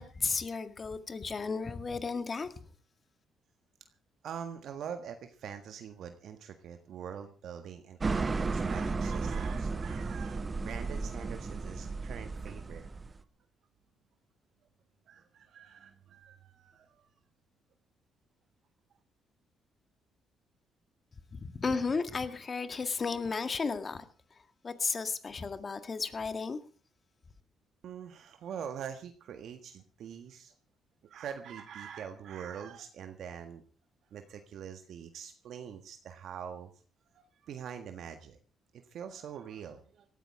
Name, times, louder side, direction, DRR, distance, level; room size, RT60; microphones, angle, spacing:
voice 1, 0.0-2.6 21.3-24.1 24.3-26.6, left 4 dB, 35° left, 10 dB, 1.9 m, -34 dB
voice 2, 4.2-12.8 15.1-17.1 27.8-30.5 31.0-33.6 34.1-36.7 37.1-38.4 38.7-40.0, right 8 dB, 70° right, 7 dB, 1.6 m, -44 dB
sound 1, 8.0-13.2, right 4 dB, 30° right, 1.1 m, -34 dB
18.0 x 14.0 x 4.8 m, 0.38 s
cardioid pair, 90°, 0 cm